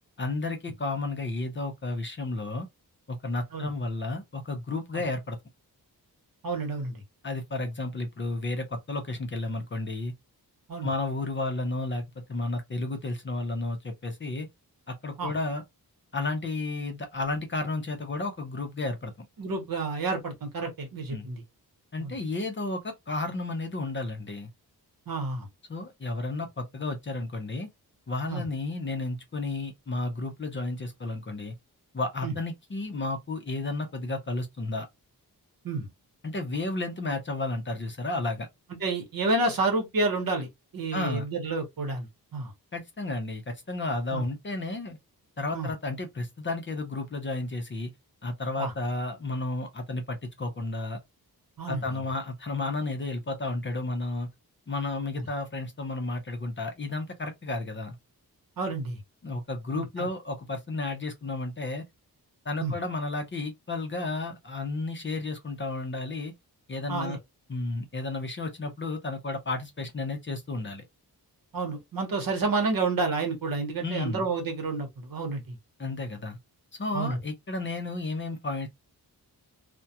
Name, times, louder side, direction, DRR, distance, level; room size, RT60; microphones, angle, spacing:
voice 1, 0.2-2.7 3.1-5.4 7.2-10.1 10.8-14.5 14.9-15.6 16.1-19.3 21.1-21.3 21.9-24.5 25.7-27.7 28.1-31.6 31.9-34.9 36.2-38.5 40.9-41.3 42.7-45.0 45.4-47.9 48.2-51.0 51.7-54.3 54.7-58.0 59.2-61.8 62.5-66.3 66.7-67.2 67.5-70.8 73.8-74.3 75.8-76.4 76.8-78.7, left 2 dB, 30° left, 0.5 m, -32 dB
voice 2, 6.4-7.0 10.7-10.9 15.2-15.3 19.4-21.4 22.0-22.1 25.1-25.5 28.3-28.5 32.2-32.3 35.6-35.9 38.8-40.5 40.7-42.1 42.3-42.5 44.1-44.2 45.5-45.7 48.6-48.7 51.6-52.0 55.1-55.3 58.6-59.0 59.7-60.1 62.6-62.7 66.9-67.2 71.5-75.6 76.9-77.2, right 3 dB, 65° right, 1.0 m, -30 dB
2.3 x 2.1 x 2.7 m
wide cardioid pair, 165°, 38 cm